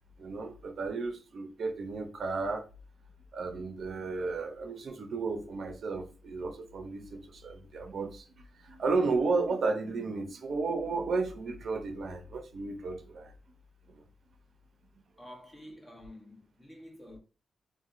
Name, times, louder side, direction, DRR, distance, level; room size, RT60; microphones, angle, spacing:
voice 1, 0.2-2.7 3.3-13.3 13.9-14.0, right 3 dB, 60° right, 0.5 m, -33 dB
voice 2, 15.2-17.2, left 1 dB, 15° left, 1.0 m, -49 dB
3.9 x 2.1 x 2.4 m
cardioid pair, 100°, 0 cm